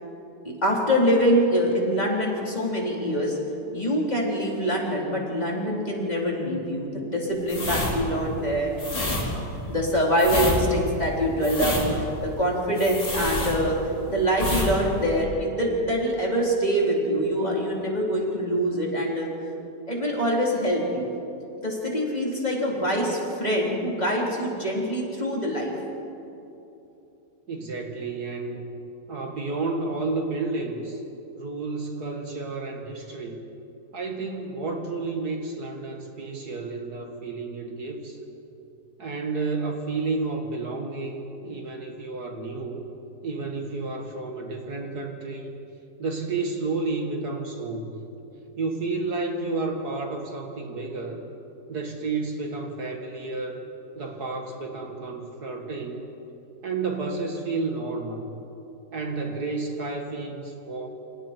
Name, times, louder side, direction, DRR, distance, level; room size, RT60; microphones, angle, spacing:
voice 1, 0.4-3.4 3.7-8.7 9.7-13.8 14.1-19.3 19.9-21.1 21.6-25.7, equal, 20° left, -3 dB, 4.1 m, -24 dB
sound 1, 7.4-14.0 14.3-14.7 15.0-15.2, left 1 dB, 85° left, 5.2 m, -28 dB
voice 2, 27.5-28.8 29.1-31.0 31.3-33.4 33.9-38.2 39.0-42.8 43.2-45.5 46.0-48.0 48.6-51.2 51.7-53.6 54.0-56.1 56.6-58.4 58.9-60.9, right 3 dB, 60° right, 2 dB, 2.4 m, -31 dB
28.5 x 26.5 x 4.6 m, 2.9 s
omnidirectional pair, 1.9 m